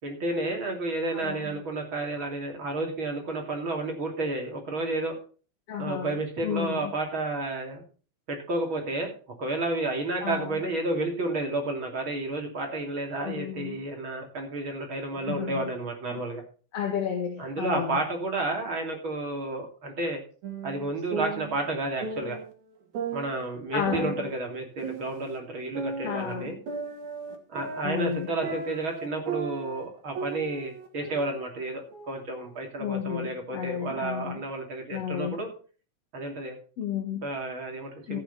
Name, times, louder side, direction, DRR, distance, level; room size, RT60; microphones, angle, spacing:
voice 1, 0.0-5.1 5.8-7.8 8.3-9.1 9.4-16.4 17.4-20.2 20.6-22.4 23.1-26.6 27.5-35.5 36.1-36.6 37.2-38.2, right 2 dB, 35° right, 1 dB, 3.5 m, -31 dB
voice 2, 1.1-1.4 5.7-6.2 6.4-6.9 10.2-10.6 13.1-13.8 15.2-15.7 16.7-18.0 23.7-24.3 26.0-26.5 27.8-28.3 32.8-34.4 34.9-35.4 36.8-37.2 38.1-38.2, left 9 dB, 50° left, 2 dB, 2.6 m, -32 dB
sound 1, 20.4-22.5 22.9-25.4 25.7-29.9 30.1-32.2, right 5 dB, 55° right, 3.4 m, -36 dB
14.5 x 9.5 x 4.2 m, 0.38 s
omnidirectional pair, 4.1 m